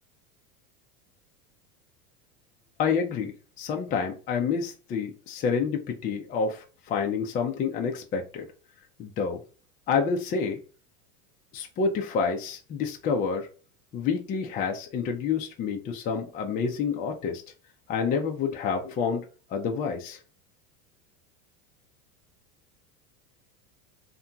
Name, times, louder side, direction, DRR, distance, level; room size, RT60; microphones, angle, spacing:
voice 1, 2.8-8.5 9.0-9.4 9.9-10.6 11.5-13.5 13.9-17.4 17.9-19.3 19.5-20.2, left 5 dB, 20° left, 3 dB, 0.3 m, -28 dB
2.8 x 2.6 x 2.2 m, 0.36 s
hypercardioid pair, 95°, 44 cm